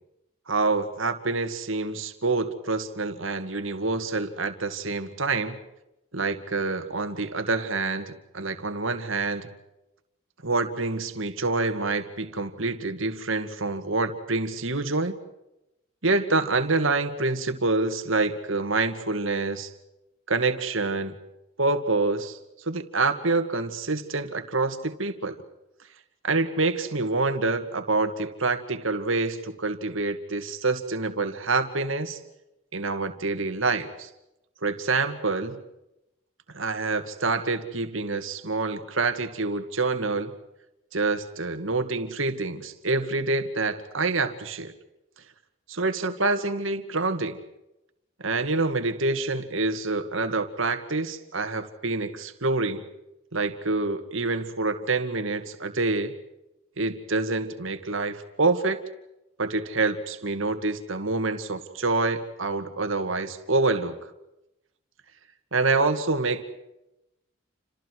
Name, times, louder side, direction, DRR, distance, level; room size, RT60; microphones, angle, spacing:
voice 1, 0.5-5.6 6.1-9.5 10.4-15.2 16.0-19.7 20.3-21.2 21.6-22.4 22.7-25.4 26.2-32.2 32.7-34.1 34.6-35.6 36.5-40.3 40.9-44.7 45.7-47.4 48.2-52.8 53.3-56.2 56.8-58.8 59.4-64.0 65.5-66.4, right 3 dB, 75° right, 8 dB, 2.2 m, -27 dB
29.5 x 27.0 x 4.8 m, 0.91 s
head